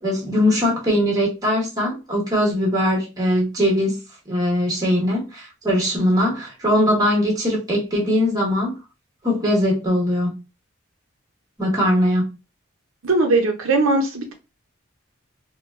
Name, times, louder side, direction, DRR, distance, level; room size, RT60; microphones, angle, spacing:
voice 1, 0.0-4.0 4.3-8.7 9.2-10.3 11.6-12.2, equal, 20° right, -3 dB, 1.2 m, -20 dB
voice 2, 13.0-14.3, right 2 dB, 80° right, 3 dB, 0.6 m, -19 dB
3.7 x 2.2 x 2.3 m, 0.28 s
head